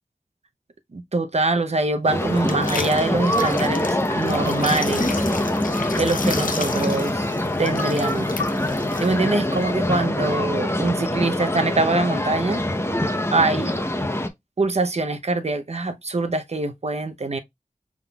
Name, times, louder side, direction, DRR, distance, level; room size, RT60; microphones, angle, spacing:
voice 1, 0.9-5.2 5.9-7.3 7.6-8.4 9.0-12.6 13.3-13.7 14.6-17.4, right 2 dB, 50° right, 0.7 m, -24 dB
sound 1, 2.0-10.1, left 5 dB, 85° left, 0.5 m, -34 dB
sound 2, 2.1-14.3, left 1 dB, 20° left, 0.8 m, -24 dB
5.7 x 3.6 x 2.3 m
wide cardioid pair, 65°, 14 cm